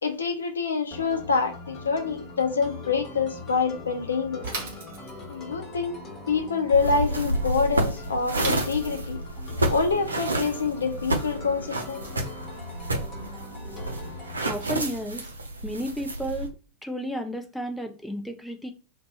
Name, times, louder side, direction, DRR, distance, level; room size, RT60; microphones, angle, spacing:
voice 1, 0.0-4.5 5.3-6.0 6.3-9.2 9.7-12.2, left 5 dB, 70° left, 0.5 m, -26 dB
sound 1, 0.9-14.6, left 3 dB, 30° left, 1.0 m, -41 dB
Bicycle / Mechanisms, 4.4-5.4 8.3-9.3, right 3 dB, 55° right, 0.9 m, -35 dB
sound 2, 6.7-16.5, right 1 dB, 80° right, 0.5 m, -30 dB
voice 2, 14.5-15.3 15.6-16.5 16.8-18.7, equal, ahead, 0.5 m, -32 dB
2.6 x 2.2 x 4.0 m
figure-of-eight pair, 90°, 0 cm